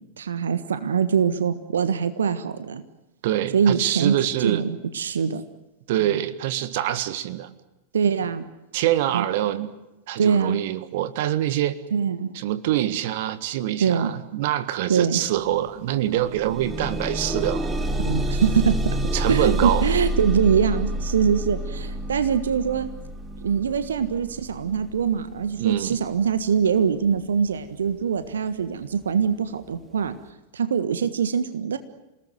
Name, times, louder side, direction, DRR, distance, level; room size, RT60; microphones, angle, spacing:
voice 1, 0.0-2.8 3.5-4.1 4.4-5.4 6.0-6.2 7.9-8.4 9.1-9.2 10.2-10.6 11.9-12.3 13.8-14.1 14.9-15.2 18.0-18.8 19.3-22.9 23.4-30.1 30.5-31.8, right 7 dB, 65° right, 11 dB, 1.5 m, -23 dB
voice 2, 3.2-4.7 5.9-7.5 8.7-9.7 10.1-11.8 12.3-17.7 19.1-19.9 25.6-26.0, right 13 dB, 50° right, 14 dB, 1.6 m, -25 dB
sound 1, 15.4-15.5 15.9-26.9 27.7-27.8 28.2-28.3, right 1 dB, 15° right, 2.6 m, -29 dB
28.0 x 19.0 x 9.2 m, 1.0 s
figure-of-eight pair, 90°, 0 cm